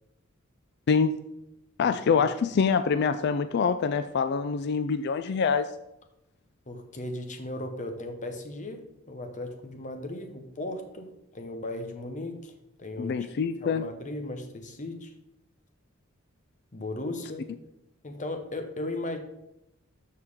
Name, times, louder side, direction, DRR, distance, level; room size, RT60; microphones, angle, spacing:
voice 1, 0.9-1.2 1.8-5.7 13.0-13.8, left 5 dB, 55° left, 11 dB, 0.4 m, -25 dB
voice 2, 1.8-2.3 6.7-11.1 11.3-12.5 12.8-13.3 13.6-15.1 16.7-17.4 18.0-19.2, left 1 dB, 40° left, 6 dB, 1.1 m, -36 dB
13.0 x 4.6 x 3.6 m, 0.85 s
head